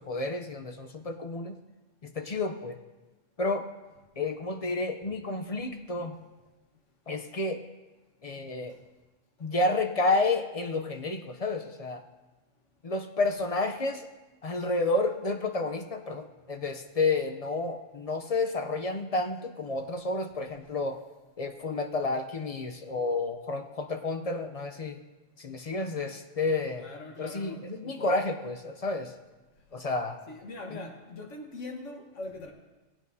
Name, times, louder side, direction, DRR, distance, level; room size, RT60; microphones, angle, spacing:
voice 1, 0.0-1.6 2.0-2.8 3.4-3.7 4.2-6.2 7.1-7.6 8.2-8.8 9.4-12.0 12.8-14.1 14.4-21.0 21.4-25.0 25.4-26.8 27.2-29.1 29.7-30.2 30.7-30.8, left 3 dB, 45° left, 5 dB, 0.5 m, -30 dB
voice 2, 26.8-28.2 30.3-32.5, left 2 dB, 70° left, 2 dB, 1.7 m, -41 dB
18.5 x 9.0 x 2.7 m, 1.1 s
omnidirectional pair, 1.3 m